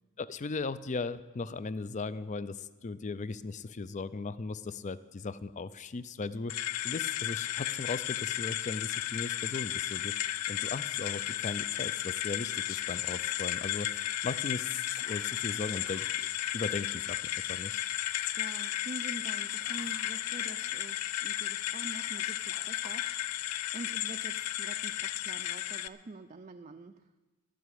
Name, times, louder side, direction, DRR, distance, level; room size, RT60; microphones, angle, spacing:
voice 1, 0.2-6.5 6.8-10.1 10.5-16.3 16.5-17.2 17.5-17.8, left 4 dB, 35° left, 16 dB, 0.4 m, -37 dB
sound 1, 6.5-25.9, left 13 dB, 90° left, 0.5 m, -34 dB
Whispering, 11.2-11.9 12.5-13.4 15.0-16.2 19.3-21.1 22.0-23.2, left 6 dB, 60° left, 1.1 m, -52 dB
voice 2, 18.3-27.1, right 2 dB, 30° right, 6 dB, 0.4 m, -46 dB
13.0 x 7.9 x 9.9 m, 1.2 s
head